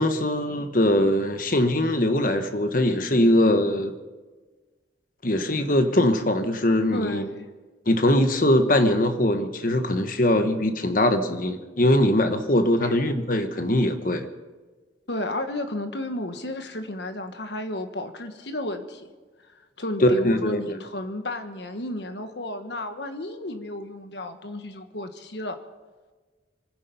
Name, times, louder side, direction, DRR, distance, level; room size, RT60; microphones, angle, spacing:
voice 1, 0.0-3.9 5.2-7.2 7.9-14.3 20.0-20.8, left 1 dB, 45° left, 8 dB, 1.3 m, -21 dB
voice 2, 6.9-7.5 12.8-13.1 15.1-19.1 19.8-25.6, left 1 dB, 65° left, 8 dB, 1.5 m, -32 dB
25.5 x 10.0 x 5.4 m, 1.3 s
head